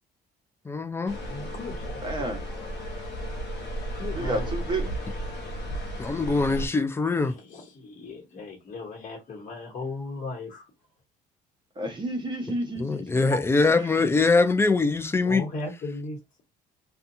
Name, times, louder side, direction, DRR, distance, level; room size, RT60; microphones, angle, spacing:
voice 1, 0.7-1.2 6.0-7.3 12.8-15.5, left 3 dB, 15° left, 0.3 m, -23 dB
sound 1, 1.1-6.7, right 1 dB, 85° left, 0.9 m, -34 dB
voice 2, 1.3-2.9 3.9-4.6 7.3-10.6 13.3-13.4 14.6-14.7 15.2-16.2, left 3 dB, 50° left, 1.1 m, -37 dB
voice 3, 2.0-2.5 4.2-4.9 11.8-13.3 13.7-13.9, right 1 dB, 25° right, 1.0 m, -31 dB
2.7 x 2.3 x 2.6 m
cardioid pair, 110°, 17 cm